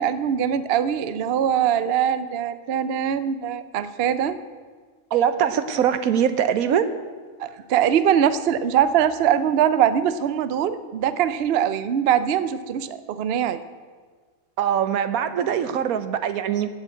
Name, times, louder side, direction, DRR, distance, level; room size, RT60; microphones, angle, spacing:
voice 1, 0.0-4.4 7.4-13.6, right 9 dB, 55° right, 13 dB, 0.7 m, -22 dB
voice 2, 5.1-6.9 14.6-16.7, right 9 dB, 90° right, 12 dB, 1.3 m, -22 dB
15.5 x 6.4 x 8.5 m, 1.5 s
omnidirectional pair, 1.5 m